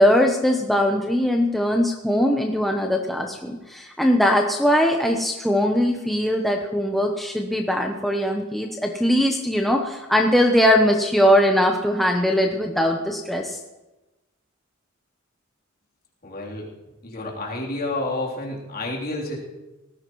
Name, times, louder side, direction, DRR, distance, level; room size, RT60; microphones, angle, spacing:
voice 1, 0.0-13.6, equal, ahead, 1 dB, 0.8 m, -20 dB
voice 2, 16.2-16.7 17.0-19.4, left 2 dB, 45° left, -3 dB, 3.4 m, -29 dB
19.0 x 14.5 x 3.1 m, 1.1 s
head